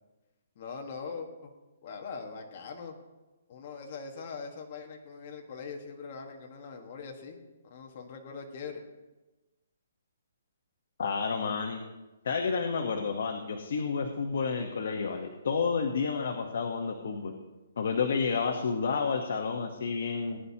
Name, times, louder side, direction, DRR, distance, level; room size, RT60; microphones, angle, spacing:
voice 1, 0.5-1.5 1.8-3.0 3.5-7.4 7.6-8.8, left 5 dB, 30° left, 2 dB, 1.4 m, -42 dB
voice 2, 11.0-11.8 12.2-17.3 17.8-20.4, left 5 dB, 55° left, 3 dB, 1.0 m, -30 dB
19.0 x 10.0 x 2.8 m, 1.1 s
hypercardioid pair, 175°, 0 cm